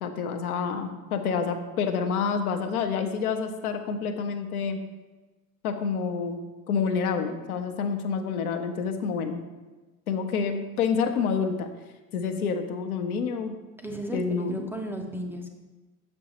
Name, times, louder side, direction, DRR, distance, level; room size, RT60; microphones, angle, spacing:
voice 1, 0.0-4.8 5.6-6.4 6.7-9.4 10.1-11.7 12.1-13.5 14.1-14.7, left 5 dB, 85° left, 6 dB, 0.7 m, -28 dB
voice 2, 13.8-15.5, right 1 dB, 5° right, 1 dB, 0.4 m, -35 dB
6.2 x 5.2 x 2.9 m, 1.2 s
hypercardioid pair, 75°, 43 cm